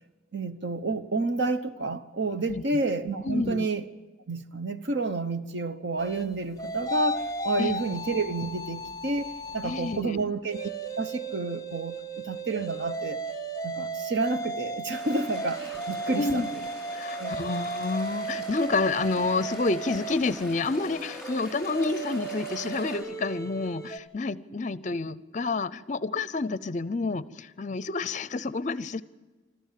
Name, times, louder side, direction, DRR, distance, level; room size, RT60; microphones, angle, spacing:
voice 1, 0.3-3.8 4.3-10.7 11.0-13.2 13.6-16.4 17.2-17.3, right 3 dB, 60° right, 1.0 m, -30 dB
voice 2, 3.2-3.7 7.6-7.7 9.6-10.2 16.1-16.5 16.9-29.0, left 3 dB, 40° left, 0.6 m, -29 dB
sound 1, 6.0-10.0 10.4-24.0, right 2 dB, 15° left, 1.1 m, -35 dB
sound 2, 14.9-23.0, left 1 dB, 5° right, 6.5 m, -44 dB
25.0 x 13.5 x 7.5 m
head